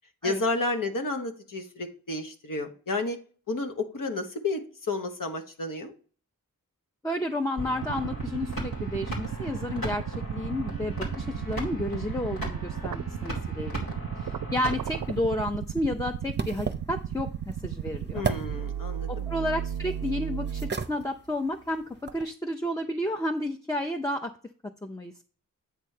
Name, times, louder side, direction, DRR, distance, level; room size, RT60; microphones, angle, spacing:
voice 1, 0.2-3.2 3.5-4.6 4.9-5.9 18.1-19.1, left 2 dB, 65° left, 5 dB, 1.2 m, -31 dB
voice 2, 7.0-13.9 14.2-18.2 19.1-24.3 24.8-25.2, left 1 dB, 10° left, 3 dB, 0.6 m, -31 dB
sound 1, 7.6-15.2, equal, 85° left, 2.4 m, -37 dB
sound 2, 7.8-20.7, right 9 dB, 70° right, 0.5 m, -34 dB
sound 3, 14.6-22.3, right 5 dB, 30° right, 0.7 m, -38 dB
8.5 x 3.2 x 6.5 m, 0.41 s
cardioid pair, 60°, 35 cm